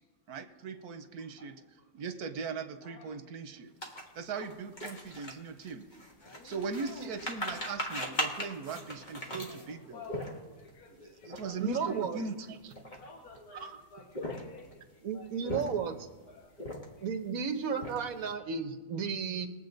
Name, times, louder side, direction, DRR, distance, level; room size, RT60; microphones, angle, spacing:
voice 1, 0.3-1.6 1.9-3.7 4.1-5.8 6.4-10.0 10.9-12.7 13.5-13.8, right 5 dB, 85° right, 9 dB, 1.4 m, -39 dB
sound 1, 3.8-10.7 11.2-11.4 11.7-11.9 12.5-13.4 14.0-14.7 15.3-16.0 16.5-17.1 17.5-18.3, equal, 30° left, 1.7 m, -39 dB
voice 2, 6.2-7.1 8.3-8.4 9.2-11.6 11.9-12.0 13.0-13.7 13.9-14.8 15.1-15.7 16.3-16.5 17.8-17.9, left 4 dB, 80° left, 1 dB, 1.8 m, -52 dB
voice 3, 11.6-12.2 15.0-16.1 17.0-19.5, right 6 dB, 70° right, 8 dB, 1.4 m, -33 dB
21.5 x 7.9 x 3.9 m, 1.3 s
omnidirectional pair, 1.6 m